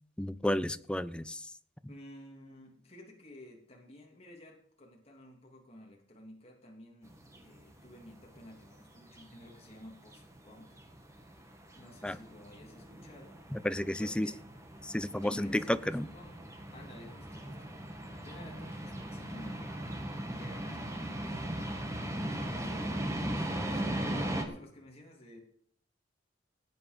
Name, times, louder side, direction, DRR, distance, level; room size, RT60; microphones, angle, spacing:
voice 1, 0.2-1.4 12.0-12.2 13.5-14.3 14.8-16.1, left 1 dB, 5° left, 14 dB, 0.5 m, -32 dB
voice 2, 1.9-10.8 11.7-13.4 14.0-14.6 15.1-16.5 16.7-17.7 18.2-19.7 20.3-22.6 22.9-25.4, left 1 dB, 35° left, -1 dB, 2.8 m, -53 dB
sound 1, 7.1-24.4, right 1 dB, 15° right, 1.8 m, -39 dB
18.0 x 8.8 x 5.2 m, 0.63 s
head